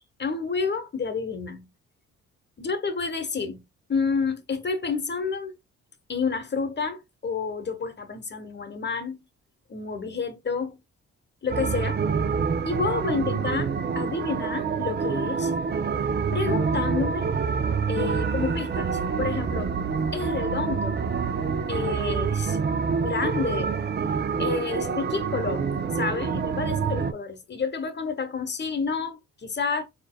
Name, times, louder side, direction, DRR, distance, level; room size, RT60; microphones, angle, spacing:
voice 1, 0.2-1.7 2.6-3.6 3.9-5.5 6.1-9.2 9.7-10.8 11.4-12.0 12.7-15.5 16.3-17.3 17.9-19.7 20.1-21.0 21.7-22.6 23.0-23.8 24.4-29.8, left 5 dB, 35° left, 1.0 m, -29 dB
sound 1, 11.5-27.1, right 5 dB, 30° right, 0.6 m, -27 dB
4.2 x 3.4 x 2.2 m
supercardioid pair, 65°, 33 cm